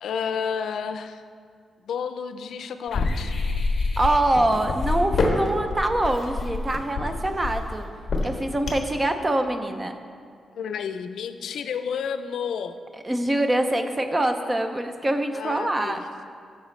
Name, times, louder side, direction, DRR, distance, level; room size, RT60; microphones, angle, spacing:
voice 1, 0.0-1.2 1.9-3.3 10.5-12.8 15.3-16.0, left 7 dB, 85° left, 9 dB, 0.4 m, -31 dB
sound 1, 2.9-9.0, left 3 dB, 40° left, 1.3 m, -26 dB
voice 2, 4.0-7.9 8.2-10.0 12.9-16.0, right 1 dB, 15° right, 7 dB, 0.5 m, -24 dB
14.0 x 6.5 x 3.2 m, 2.2 s
wide cardioid pair, 160°, 0 cm